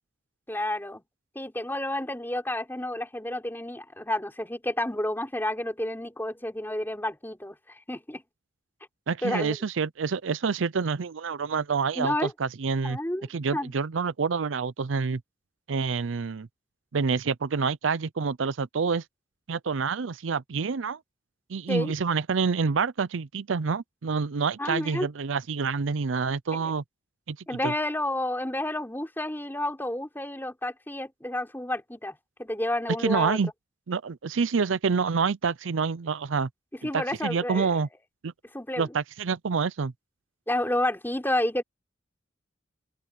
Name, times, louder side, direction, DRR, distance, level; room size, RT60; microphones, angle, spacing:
voice 1, 0.5-1.0 1.4-8.2 9.2-9.6 12.0-12.3 12.8-13.7 21.7-21.9 24.6-25.1 26.6-26.7 27.5-33.4 36.8-37.7 38.5-38.9 40.5-41.6, left 1 dB, 10° left, 3.7 m, -30 dB
voice 2, 9.1-13.0 13.3-15.2 15.7-16.5 16.9-19.0 19.5-21.0 21.5-26.8 27.3-27.4 27.6-27.7 33.0-33.5 33.9-36.5 36.9-37.9 38.2-38.3 38.8-39.9, right 5 dB, 75° right, 0.5 m, -27 dB
open air
head